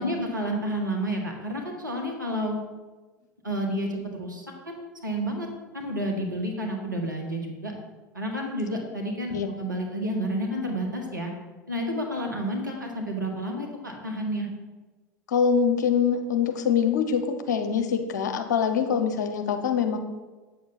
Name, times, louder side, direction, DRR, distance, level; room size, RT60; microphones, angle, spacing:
voice 1, 0.0-2.6 3.4-5.5 5.7-7.7 8.1-11.3 11.7-14.5, equal, 90° right, 1 dB, 1.5 m, -30 dB
voice 2, 15.3-20.0, left 7 dB, 70° left, 6 dB, 0.9 m, -24 dB
8.1 x 7.0 x 4.1 m, 1.3 s
figure-of-eight pair, 75°, 10 cm